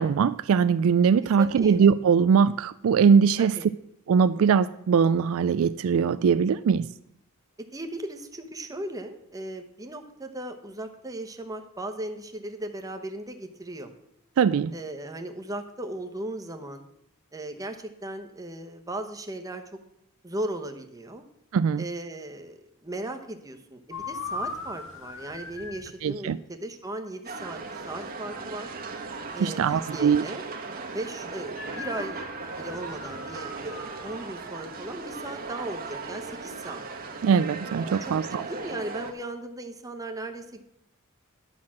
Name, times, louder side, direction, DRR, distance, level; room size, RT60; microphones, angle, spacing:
voice 1, 0.0-3.6 4.1-6.9 14.4-14.7 21.5-21.8 26.0-26.4 29.4-30.3 37.2-38.4, right 6 dB, 65° right, 0.3 m, -21 dB
voice 2, 1.4-1.8 3.4-3.7 7.7-13.9 14.7-16.9 17.3-19.6 20.2-21.3 21.8-27.6 27.9-28.7 29.3-30.4 30.9-36.9 37.9-38.1 38.5-40.7, right 1 dB, 15° right, 1.0 m, -37 dB
sound 1, 23.9-25.9 31.5-34.2, left 3 dB, 65° left, 1.5 m, -39 dB
sound 2, 27.2-39.1, right 4 dB, 45° right, 1.2 m, -37 dB
10.5 x 5.8 x 7.4 m
head